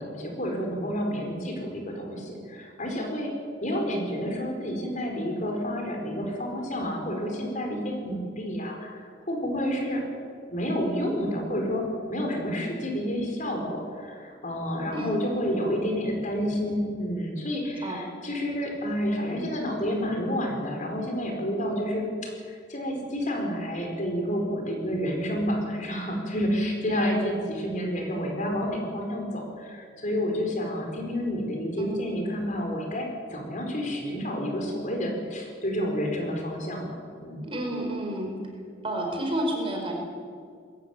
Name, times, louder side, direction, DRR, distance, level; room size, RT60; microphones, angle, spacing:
voice 1, 0.0-3.3 3.6-10.0 10.5-36.8 37.2-37.5, equal, 45° left, 2 dB, 4.8 m, -29 dB
voice 2, 37.4-38.4 38.8-39.9, right 1 dB, 30° right, 1 dB, 4.7 m, -30 dB
21.5 x 15.0 x 9.6 m, 2.2 s
head